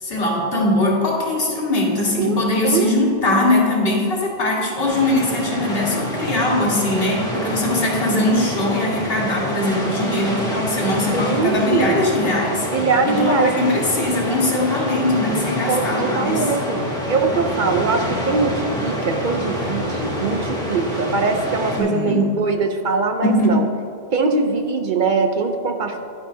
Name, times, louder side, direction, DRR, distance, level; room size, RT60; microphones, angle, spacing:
voice 1, 0.0-16.5 21.8-22.3 23.2-23.6 24.2-24.3, left 1 dB, 70° left, -3 dB, 1.9 m, -21 dB
voice 2, 2.2-2.9 11.1-12.0 12.7-13.5 15.7-16.8 17.1-23.7 24.1-26.0, right 4 dB, 55° right, 5 dB, 0.7 m, -22 dB
sound 1, 4.8-21.8, equal, 5° left, 1.9 m, -26 dB
10.5 x 10.0 x 2.7 m, 2.6 s
omnidirectional pair, 1.0 m